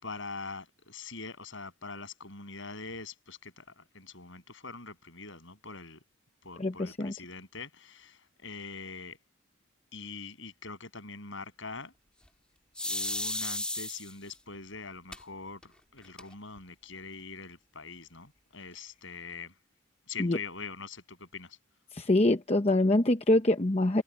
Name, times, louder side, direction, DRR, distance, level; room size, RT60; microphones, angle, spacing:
voice 1, 0.0-6.0 6.4-9.2 9.9-11.9 12.8-19.5 20.1-21.6, left 4 dB, 60° left, 7.4 m, -43 dB
voice 2, 6.6-7.1 20.2-20.4 21.9-24.0, left 1 dB, 30° left, 0.8 m, -25 dB
sound 1, 12.8-14.3 15.1-15.2 15.6-15.7 16.0-16.6, left 1 dB, 5° left, 2.5 m, -34 dB
head